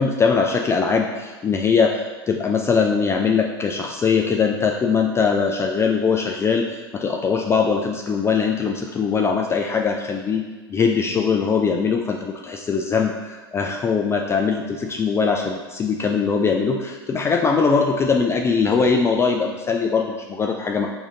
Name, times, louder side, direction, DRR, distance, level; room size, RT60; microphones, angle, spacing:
voice 1, 0.0-20.9, left 5 dB, 20° left, 2 dB, 0.3 m, -21 dB
4.8 x 2.7 x 3.6 m, 1.3 s
hypercardioid pair, 90°, 13 cm